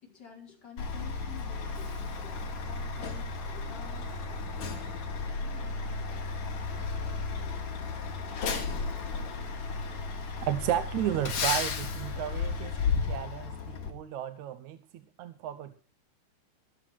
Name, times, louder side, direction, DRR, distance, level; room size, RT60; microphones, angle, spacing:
voice 1, 0.0-3.3 3.5-5.0 5.4-7.1 7.4-7.5, left 6 dB, 30° left, -1 dB, 5.3 m, -51 dB
Truck, 0.8-13.9, left 4 dB, 60° left, 3.6 m, -34 dB
voice 2, 10.5-15.7, right 11 dB, 70° right, 10 dB, 2.1 m, -33 dB
15.0 x 13.0 x 4.5 m, 0.38 s
omnidirectional pair, 3.8 m